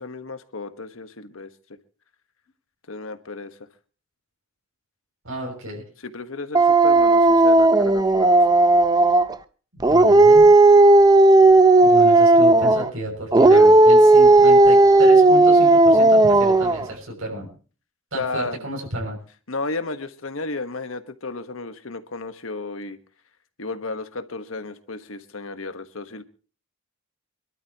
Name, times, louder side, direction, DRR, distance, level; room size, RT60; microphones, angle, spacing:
voice 1, 0.0-1.5 2.9-3.5 6.1-8.3 10.8-10.9 13.5-13.7 18.1-18.7 19.5-23.0 23.6-26.2, left 3 dB, 80° left, 9 dB, 1.4 m, -33 dB
voice 2, 5.2-5.8 9.7-10.5 11.8-17.5 18.1-19.2, right 1 dB, 80° right, -2 dB, 6.9 m, -32 dB
Dog, 6.5-9.3 9.8-12.9 13.3-16.8, right 2 dB, 20° right, 0.6 m, -13 dB
26.0 x 12.5 x 3.0 m, 0.38 s
head